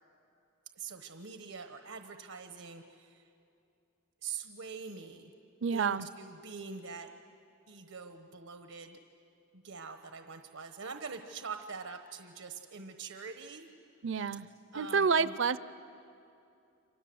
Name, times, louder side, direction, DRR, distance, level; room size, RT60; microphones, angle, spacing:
voice 1, 0.8-3.2 4.2-5.3 5.7-7.1 7.7-9.0 9.5-13.7 14.1-14.3 14.7-15.3, right 5 dB, 90° right, 6 dB, 1.2 m, -44 dB
voice 2, 5.6-6.1 14.0-14.5 14.8-15.6, right 5 dB, 60° right, 16 dB, 0.5 m, -28 dB
30.0 x 25.0 x 7.9 m, 2.7 s
head